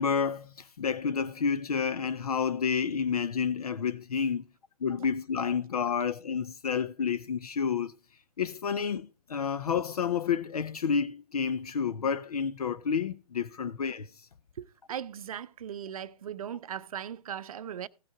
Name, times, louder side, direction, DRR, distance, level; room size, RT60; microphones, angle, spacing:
voice 1, 0.0-4.4 4.8-7.9 8.4-14.1, left 6 dB, 65° left, 0.7 m, -30 dB
voice 2, 14.6-17.9, right 9 dB, 60° right, 0.6 m, -38 dB
16.0 x 6.3 x 4.7 m
figure-of-eight pair, 125°, 20 cm